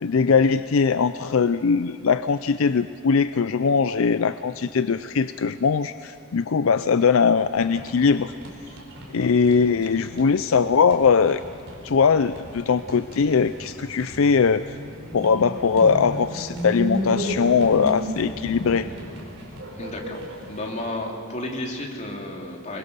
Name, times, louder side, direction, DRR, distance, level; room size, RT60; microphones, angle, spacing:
voice 1, 0.0-8.3 9.1-11.4 11.8-14.6 15.1-18.9, left 5 dB, 75° left, 12 dB, 0.5 m, -20 dB
sound 1, 7.4-20.9, equal, 65° right, 4.7 m, -35 dB
voice 2, 19.8-20.2 20.5-22.8, left 1 dB, 35° left, 0 dB, 2.9 m, -32 dB
24.0 x 22.5 x 6.9 m, 2.3 s
head